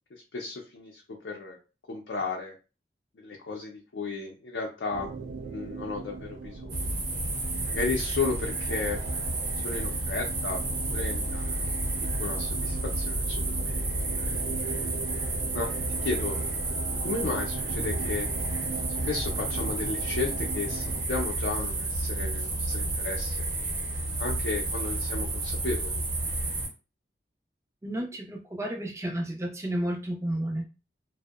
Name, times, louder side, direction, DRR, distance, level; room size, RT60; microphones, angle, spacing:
voice 1, 0.1-1.6 1.9-2.5 3.2-5.1 5.4-6.9 7.7-9.0 9.6-13.9 15.5-15.7 16.0-16.4 17.0-18.3 19.1-23.5 24.2-26.0, left 4 dB, 90° left, 0 dB, 0.5 m, -34 dB
sound 1, 4.9-21.1, right 4 dB, 85° right, 0.3 m, -39 dB
sound 2, 6.7-26.7, right 2 dB, 50° right, 0.8 m, -31 dB
voice 2, 27.8-30.6, right 1 dB, 15° right, 2 dB, 0.4 m, -32 dB
2.6 x 2.0 x 2.3 m, 0.32 s
head